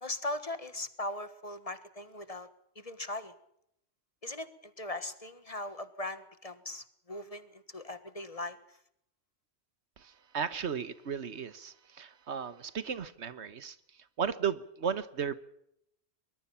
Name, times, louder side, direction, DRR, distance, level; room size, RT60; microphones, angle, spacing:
voice 1, 0.0-2.5 2.7-3.3 4.2-8.6, left 1 dB, 35° left, 12 dB, 1.6 m, -39 dB
voice 2, 10.0-15.3, right 7 dB, 80° right, 15 dB, 1.4 m, -35 dB
23.5 x 21.0 x 5.8 m, 0.73 s
omnidirectional pair, 1.1 m